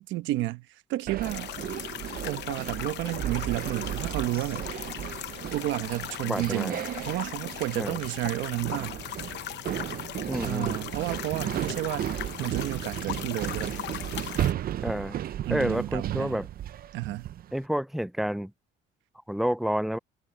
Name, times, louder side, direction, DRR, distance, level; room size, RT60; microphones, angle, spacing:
voice 1, 0.0-1.5 2.2-4.7 5.5-6.8 7.0-9.0 10.4-12.1 12.4-13.7 15.5-16.4 16.9-17.3, right 16 dB, 85° right, 1.1 m, -31 dB
sound 1, 1.1-17.5, right 11 dB, 50° right, 0.6 m, -35 dB
sound 2, 1.2-14.5, left 13 dB, 65° left, 0.8 m, -39 dB
voice 2, 6.2-6.8 7.8-8.0 10.3-10.8 14.8-15.2 15.5-16.5 17.5-18.5 19.3-20.0, equal, ahead, 0.4 m, -29 dB
cardioid pair, 105°, 19 cm